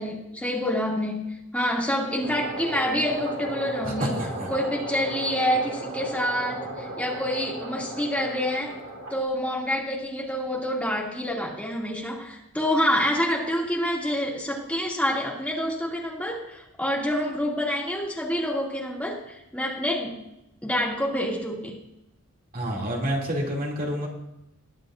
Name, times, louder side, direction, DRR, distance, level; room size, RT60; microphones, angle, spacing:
voice 1, 0.0-4.1 4.5-8.7 9.1-20.1 20.6-21.8, equal, 5° left, -3 dB, 2.3 m, -27 dB
sound 1, 2.2-9.2, right 1 dB, 65° right, 2.0 m, -35 dB
voice 2, 3.8-4.5 22.5-24.1, equal, 40° right, -2 dB, 2.5 m, -28 dB
21.5 x 8.9 x 2.5 m, 0.89 s
head